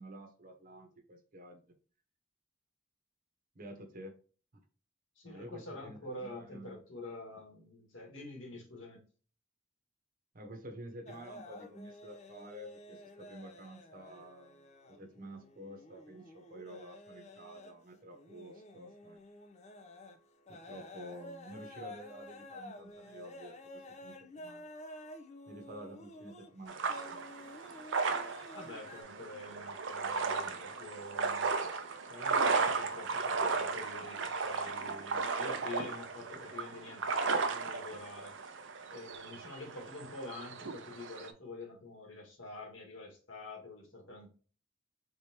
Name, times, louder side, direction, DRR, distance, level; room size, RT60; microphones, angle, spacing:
voice 1, 0.0-1.6 3.5-4.1 4.5-4.6 5.2-6.8 10.3-14.6 14.9-19.2 20.5-24.7 25.5-27.2, right 1 dB, 45° right, 5 dB, 0.9 m, -50 dB
voice 2, 5.1-9.0 28.5-31.5 32.0-38.3 38.9-44.3, left 2 dB, 90° left, 0 dB, 1.8 m, -47 dB
sound 1, 11.1-29.0, left 1 dB, 35° left, 0.5 m, -51 dB
sound 2, 26.7-41.3, right 4 dB, 70° right, 0.5 m, -35 dB
4.3 x 3.3 x 2.8 m, 0.39 s
head